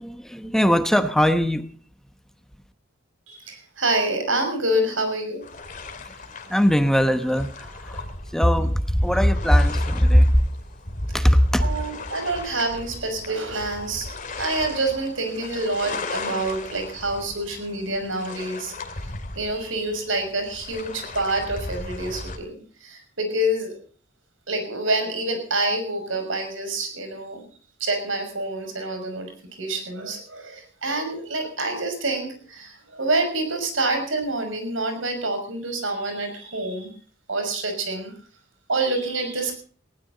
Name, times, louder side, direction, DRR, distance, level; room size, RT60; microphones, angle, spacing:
voice 1, 0.0-1.7 6.0-6.1 6.5-8.0 8.3-10.4 11.1-11.7, equal, 5° left, 1.0 m, -19 dB
voice 2, 3.3-5.4 11.1-11.2 11.6-14.1 14.4-18.7 19.4-23.7 24.5-27.5 27.8-29.3 29.6-36.9 37.3-38.1 38.7-39.6, right 2 dB, 85° right, 5.9 m, -27 dB
sound 1, 5.4-22.4, left 2 dB, 40° left, 2.5 m, -37 dB
19.0 x 17.0 x 4.0 m
head